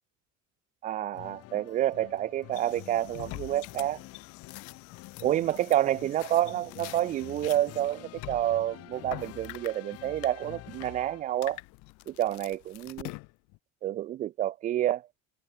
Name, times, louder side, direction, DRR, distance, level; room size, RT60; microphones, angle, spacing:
voice 1, 0.8-4.0 5.2-11.6 12.1-13.1 13.8-15.0, right 13 dB, 25° right, 0.4 m, -29 dB
sound 1, 1.1-11.5, left 17 dB, 50° left, 4.5 m, -48 dB
sound 2, 2.5-7.8, left 40 dB or more, 90° left, 5.4 m, -51 dB
sound 3, 3.0-3.9 4.2-7.0 7.3-9.8 10.2-10.3 10.6-10.9 11.3-13.6, left 26 dB, 65° left, 2.6 m, -44 dB
cardioid pair, 175°, 31 cm